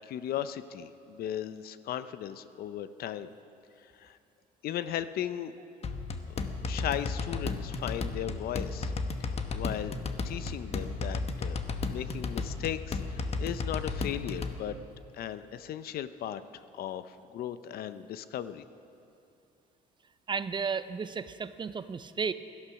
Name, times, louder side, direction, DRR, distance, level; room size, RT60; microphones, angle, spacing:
voice 1, 0.1-3.3 4.0-4.2 4.6-5.5 6.6-8.9 9.5-10.0 10.2-11.6 11.9-14.8 15.1-18.6, left 10 dB, 65° left, 13 dB, 0.6 m, -36 dB
sound 1, 5.8-14.6, left 3 dB, 40° left, 1.0 m, -34 dB
voice 2, 20.3-22.3, right 5 dB, 30° right, 13 dB, 0.5 m, -33 dB
17.0 x 13.0 x 5.9 m, 2.6 s
cardioid pair, 110°, 17 cm